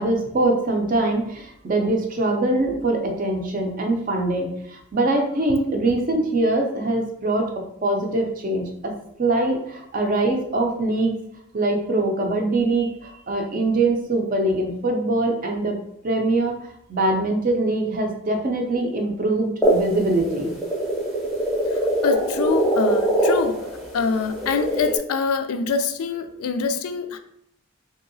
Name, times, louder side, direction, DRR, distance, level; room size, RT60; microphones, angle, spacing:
voice 1, 0.0-11.1 11.5-15.8 16.0-16.6 16.9-20.5, right 2 dB, 40° right, 3 dB, 0.4 m, -23 dB
sound 1, 19.6-25.0, right 1 dB, ahead, 0.6 m, -23 dB
voice 2, 22.0-23.7 23.9-27.2, left 5 dB, 85° left, 9 dB, 0.3 m, -24 dB
2.9 x 2.7 x 2.6 m, 0.73 s
head